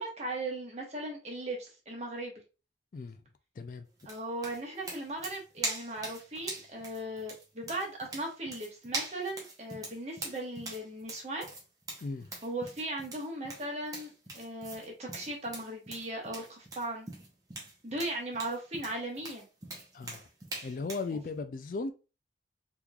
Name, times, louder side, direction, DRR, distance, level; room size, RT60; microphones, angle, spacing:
voice 1, 0.0-2.4 4.0-11.5 12.4-17.1 17.8-19.5, right 1 dB, 40° right, 1.1 m, -38 dB
voice 2, 3.6-3.9 12.0-12.3 19.9-20.3 20.6-21.9, left 3 dB, 50° left, 0.3 m, -37 dB
sound 1, 4.0-21.1, right 2 dB, 20° right, 0.8 m, -42 dB
3.6 x 3.0 x 2.3 m
head